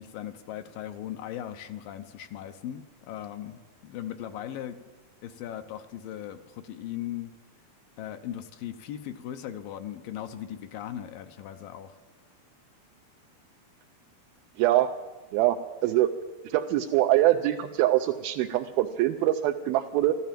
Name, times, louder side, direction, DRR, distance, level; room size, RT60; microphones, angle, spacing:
voice 1, 0.0-4.8 5.2-7.3 8.0-12.0, left 11 dB, 75° left, 8 dB, 2.4 m, -38 dB
voice 2, 14.6-14.9 15.3-15.6 15.8-16.1 16.5-20.1, right 14 dB, 85° right, 4 dB, 2.5 m, -23 dB
14.0 x 12.5 x 7.5 m, 1.3 s
omnidirectional pair, 4.2 m